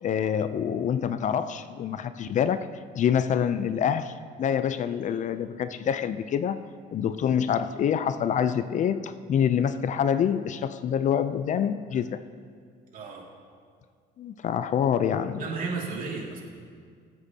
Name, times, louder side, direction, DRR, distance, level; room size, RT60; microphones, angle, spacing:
voice 1, 0.0-2.7 2.9-4.1 4.4-6.7 6.9-12.2 14.2-15.4, left 8 dB, 45° left, 12 dB, 0.5 m, -26 dB
voice 2, 12.9-13.3 15.3-16.4, right 4 dB, 55° right, -2 dB, 2.4 m, -33 dB
23.5 x 8.0 x 2.8 m, 2.1 s
cardioid pair, 110°, 17 cm